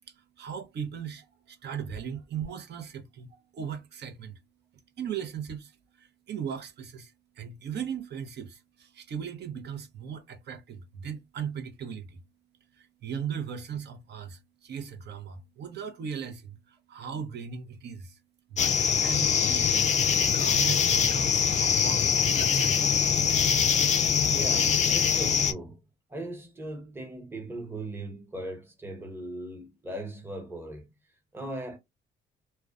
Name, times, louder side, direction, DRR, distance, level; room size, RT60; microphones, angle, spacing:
voice 1, 0.4-4.3 5.0-5.7 6.0-12.2 12.8-18.2 18.5-22.8, right 7 dB, 60° right, 0.7 m, -38 dB
sound 1, 18.6-25.5, left 7 dB, 35° left, 0.4 m, -23 dB
voice 2, 24.3-25.8 26.1-30.9 31.3-31.8, right 1 dB, 10° right, 0.9 m, -38 dB
2.3 x 2.2 x 2.4 m
cardioid pair, 90°, 20 cm